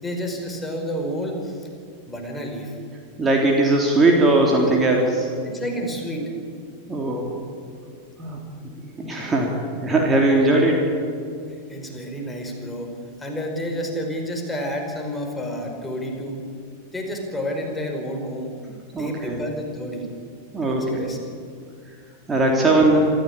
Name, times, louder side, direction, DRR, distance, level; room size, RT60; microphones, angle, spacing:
voice 1, 0.0-1.7 2.1-2.8 5.4-6.3 11.7-12.9 13.2-16.4 16.9-18.5 19.0-20.1 20.6-21.2, equal, 10° left, 2 dB, 5.0 m, -30 dB
voice 2, 3.2-5.3 6.9-7.3 8.2-8.4 9.0-9.5 9.8-10.9 18.9-19.4 20.5-21.0 22.3-23.1, right 2 dB, 15° right, 0 dB, 3.7 m, -19 dB
27.0 x 15.0 x 8.9 m, 2.4 s
figure-of-eight pair, 90°, 0 cm